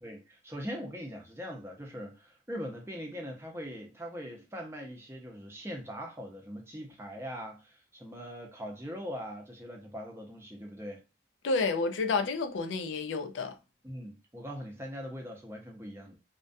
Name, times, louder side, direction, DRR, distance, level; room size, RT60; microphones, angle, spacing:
voice 1, 0.0-11.0 13.8-16.2, equal, 15° right, 0.5 m, -41 dB
voice 2, 11.4-13.6, left 4 dB, 85° left, 0.4 m, -30 dB
2.3 x 2.1 x 2.5 m
head